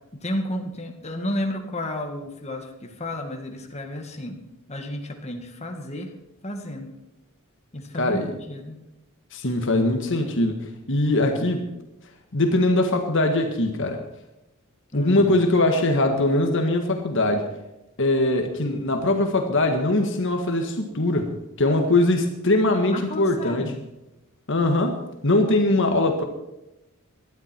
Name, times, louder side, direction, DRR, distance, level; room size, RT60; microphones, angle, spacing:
voice 1, 0.1-4.4 4.7-6.1 6.4-6.9 7.7-8.8 14.9-15.3 22.9-23.8, left 1 dB, 30° left, 3 dB, 2.0 m, -32 dB
voice 2, 8.0-8.3 9.3-11.6 12.3-14.0 14.9-17.5 18.0-23.7 24.5-26.2, left 2 dB, 60° left, 5 dB, 1.7 m, -22 dB
19.0 x 12.5 x 4.5 m, 0.93 s
head